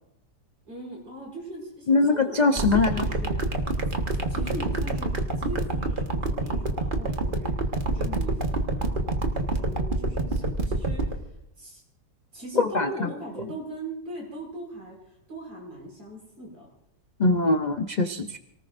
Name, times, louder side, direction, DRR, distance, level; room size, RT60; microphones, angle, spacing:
voice 1, 0.7-3.4 4.3-5.1 5.4-7.5 7.9-11.2 11.6-11.8 12.3-16.7, right 1 dB, 70° right, -2 dB, 6.9 m, -39 dB
voice 2, 1.9-3.0 12.6-13.1 17.2-18.4, left 3 dB, 45° left, 6 dB, 0.5 m, -22 dB
sound 1, 2.6-11.1, right 2 dB, 35° right, 1.4 m, -26 dB
29.0 x 18.5 x 2.6 m, 0.79 s
omnidirectional pair, 1.8 m